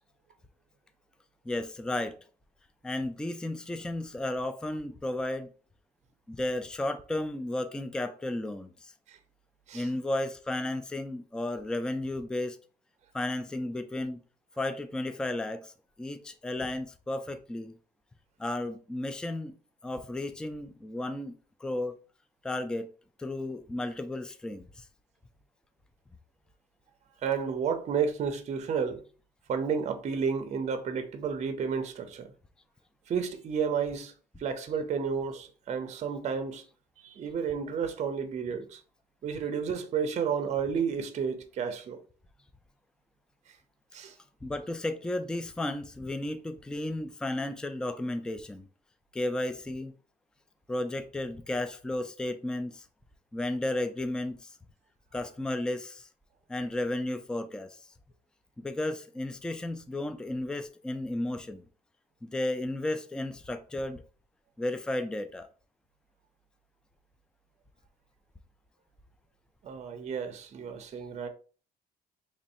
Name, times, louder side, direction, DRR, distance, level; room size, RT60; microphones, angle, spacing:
voice 1, 1.5-2.2 2.8-5.5 6.3-8.9 9.7-12.6 13.1-14.2 14.6-15.7 16.0-17.8 18.4-19.5 19.8-21.3 21.6-21.9 22.4-22.9 23.2-24.8 44.4-48.7 49.1-49.9 50.7-52.8 53.3-54.5 55.1-56.1 56.5-57.8 58.6-61.6 62.2-64.0 64.6-65.5, left 1 dB, 5° left, 0.3 m, -33 dB
voice 2, 27.2-29.0 29.5-32.3 33.1-34.1 34.4-36.6 37.0-38.8 39.2-42.0 43.9-44.1 69.6-71.3, right 6 dB, 40° right, 0.6 m, -31 dB
3.1 x 2.5 x 4.2 m
cardioid pair, 110°, 17 cm